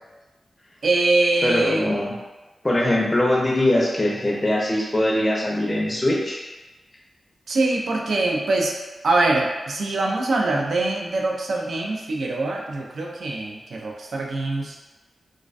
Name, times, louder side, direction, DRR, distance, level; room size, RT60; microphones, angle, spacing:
voice 1, 0.8-1.9 7.5-8.7 9.0-14.8, right 2 dB, 75° right, -1 dB, 0.3 m, -23 dB
voice 2, 1.4-2.1 2.6-6.4, left 1 dB, 25° left, -2 dB, 0.4 m, -21 dB
2.3 x 2.1 x 2.4 m, 1.1 s
wide cardioid pair, 105°, 0 cm